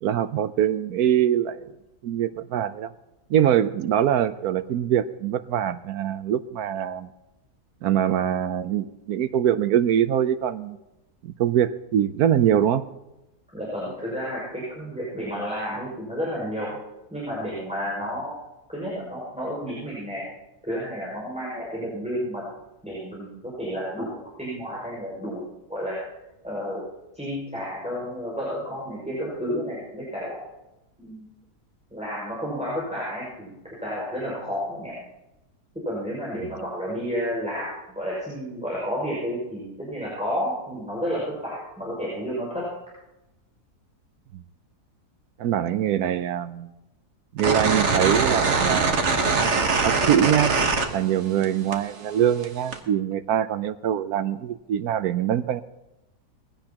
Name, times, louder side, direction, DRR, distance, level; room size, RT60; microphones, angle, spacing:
voice 1, 0.0-1.7 2.0-2.9 3.3-7.1 7.8-10.8 11.2-12.8 36.4-36.5 44.3-44.4 45.4-46.7 47.3-49.0 49.8-50.6 50.9-55.6, right 10 dB, 70° right, 13 dB, 1.1 m, -23 dB
voice 2, 13.5-16.7 17.1-18.3 18.7-20.3 20.6-22.4 22.8-26.0 26.4-26.8 27.1-30.4 31.0-31.2 31.9-34.9 35.8-37.7 37.9-42.7, equal, 5° right, -7 dB, 5.7 m, -31 dB
sound 1, 47.4-51.4 51.7-52.8, right 4 dB, 50° right, 1.5 m, -22 dB
20.5 x 16.0 x 2.9 m, 0.95 s
omnidirectional pair, 1.7 m